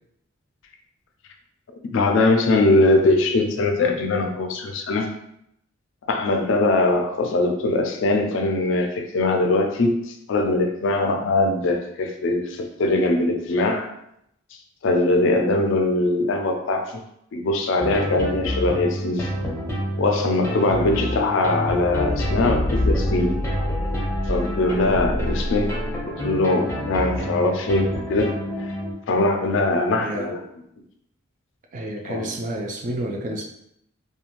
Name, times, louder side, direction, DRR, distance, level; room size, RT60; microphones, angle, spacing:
voice 1, 1.8-5.1 6.1-13.9 14.8-17.0 17.3-19.3 20.0-23.4 24.3-25.7 26.1-28.7 29.1-30.4 32.1-32.2, left 2 dB, 60° left, 4 dB, 0.4 m, -21 dB
sound 1, 17.8-28.9, equal, 15° left, 0.6 m, -27 dB
voice 2, 30.0-30.3 31.7-33.5, right 1 dB, 35° right, 2 dB, 0.3 m, -29 dB
2.4 x 2.2 x 2.9 m, 0.76 s
head